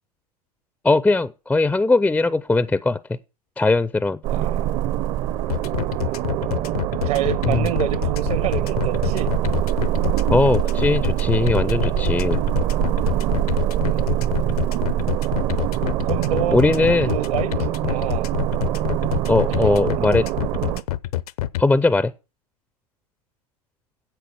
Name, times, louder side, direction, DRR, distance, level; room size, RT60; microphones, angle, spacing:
voice 1, 0.8-3.0 3.6-4.2 7.4-7.7 10.3-12.4 16.5-17.1 19.3-20.3 21.6-22.1, left 3 dB, 5° left, 0.4 m, -19 dB
sound 1, 4.2-20.8, right 12 dB, 40° right, 0.7 m, -24 dB
voice 2, 4.3-4.6 6.0-6.3 7.0-9.3 13.8-14.4 15.5-16.6 17.1-18.3 19.5-20.1, right 11 dB, 65° right, 1.2 m, -28 dB
sound 2, 5.5-21.6, left 14 dB, 65° left, 0.7 m, -26 dB
10.5 x 7.9 x 4.7 m
hypercardioid pair, 105°, 20 cm